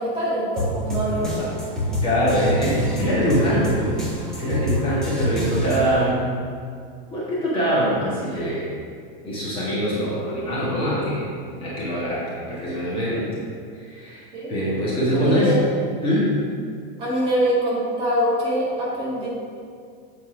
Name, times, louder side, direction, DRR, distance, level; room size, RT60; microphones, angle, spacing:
voice 1, 0.0-1.5 14.3-14.5 15.1-15.6 17.0-19.3, right 1 dB, 20° right, -7 dB, 1.7 m, -24 dB
sound 1, 0.6-6.0, equal, ahead, 1.0 m, -26 dB
voice 2, 2.0-3.9 4.4-6.3 7.1-8.7 9.2-11.3 11.6-13.3 13.7-14.2 14.5-15.6 16.0-16.3, equal, 20° left, -8 dB, 1.5 m, -23 dB
8.1 x 4.3 x 4.9 m, 2.2 s
supercardioid pair, 170°, 30 cm